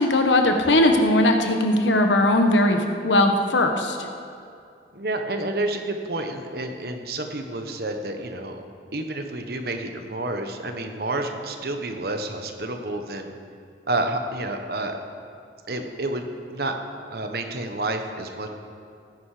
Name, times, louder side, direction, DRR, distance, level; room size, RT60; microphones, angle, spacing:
voice 1, 0.0-4.0, left 1 dB, 90° left, 4 dB, 1.3 m, -19 dB
voice 2, 4.9-8.6 8.9-13.3 13.9-15.0 15.7-16.7 17.1-18.5, right 2 dB, 55° right, 5 dB, 1.2 m, -29 dB
17.5 x 10.0 x 5.0 m, 2.5 s
head